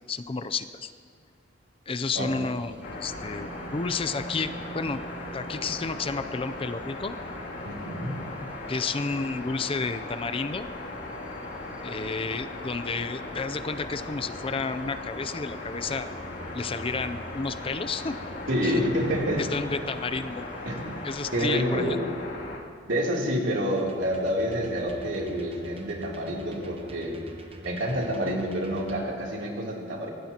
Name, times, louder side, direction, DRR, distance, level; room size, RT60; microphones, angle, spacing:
voice 1, 0.1-0.9 1.9-5.0 5.3-7.1 8.7-10.7 11.8-16.1 16.5-18.2 18.6-18.8 19.4-20.4 21.0-22.0, left 4 dB, 30° left, 11 dB, 0.4 m, -31 dB
sound 1, 2.0-21.5, right 1 dB, 10° right, 3.7 m, -48 dB
sound 2, 2.8-22.6, left 2 dB, 65° left, 2.7 m, -38 dB
voice 2, 7.6-8.2 18.5-19.4 20.6-20.8 21.3-22.0 22.9-27.2 27.6-30.1, equal, 75° right, -2 dB, 3.1 m, -28 dB
sound 3, 23.8-29.0, equal, 30° right, 1.2 m, -46 dB
24.0 x 18.0 x 2.9 m, 2.2 s
head